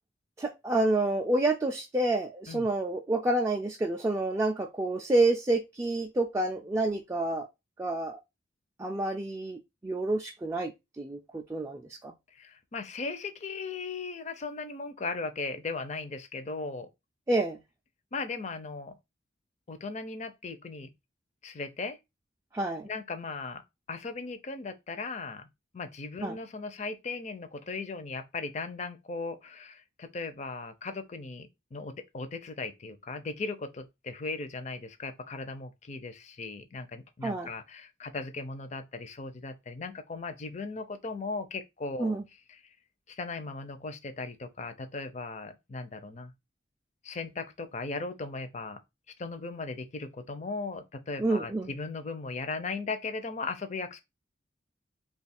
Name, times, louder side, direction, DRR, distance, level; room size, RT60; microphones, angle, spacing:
voice 1, 0.4-7.5 7.8-8.2 8.8-12.1 17.3-17.6 22.5-22.9 26.2-26.4 37.2-37.5 42.0-42.2 51.2-51.7, right 2 dB, 15° right, 0.3 m, -29 dB
voice 2, 12.3-16.9 18.1-19.0 19.7-20.9 21.4-22.0 22.8-23.6 23.9-25.5 25.7-42.2 42.5-42.6 43.1-46.3 47.0-48.8 49.2-54.0, left 3 dB, 40° left, 0.5 m, -37 dB
3.1 x 2.3 x 4.1 m
head